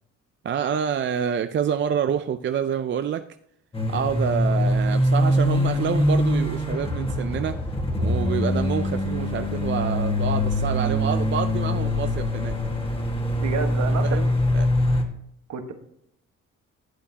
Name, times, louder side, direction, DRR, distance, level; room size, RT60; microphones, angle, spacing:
voice 1, 0.4-3.3 3.9-7.6 8.0-12.6 14.0-14.7, right 8 dB, 40° right, 9 dB, 0.4 m, -27 dB
sound 1, 3.7-15.0, left 1 dB, 20° left, 1.5 m, -23 dB
voice 2, 13.3-14.2 15.5-15.7, right 5 dB, 65° right, 6 dB, 1.4 m, -29 dB
11.5 x 8.3 x 2.8 m, 0.73 s
cardioid pair, 90°, 30 cm